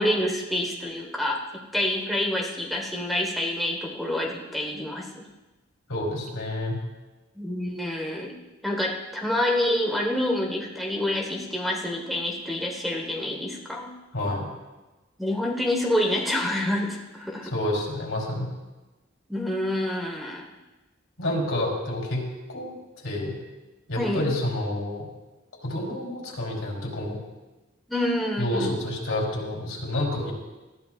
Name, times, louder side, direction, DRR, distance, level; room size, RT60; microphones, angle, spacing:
voice 1, 0.0-5.2 7.3-8.4 8.6-13.9 15.2-17.5 19.3-20.4 24.0-24.3 27.9-28.8, left 1 dB, ahead, -2 dB, 1.3 m, -27 dB
voice 2, 5.9-6.8 14.1-14.5 17.4-18.5 21.2-22.8 23.0-23.4 23.9-25.1 25.6-27.2 28.4-30.3, left 1 dB, 90° left, -2 dB, 3.5 m, -29 dB
19.0 x 13.0 x 2.5 m, 1.1 s
head